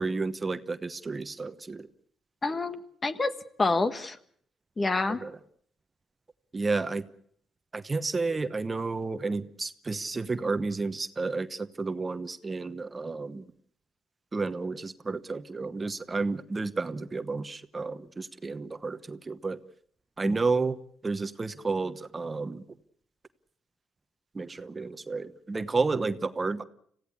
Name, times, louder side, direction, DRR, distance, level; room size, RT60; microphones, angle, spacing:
voice 1, 0.0-1.9 5.1-5.3 6.5-7.0 7.7-13.5 14.3-19.6 20.2-20.8 21.0-22.6 24.3-26.6, right 3 dB, 25° right, 11 dB, 1.0 m, -31 dB
voice 2, 2.4-3.3 3.6-4.2 4.8-5.2 20.2-20.4, left 3 dB, 30° left, 11 dB, 1.5 m, -27 dB
26.0 x 16.0 x 8.3 m, 0.64 s
cardioid pair, 90°, 0 cm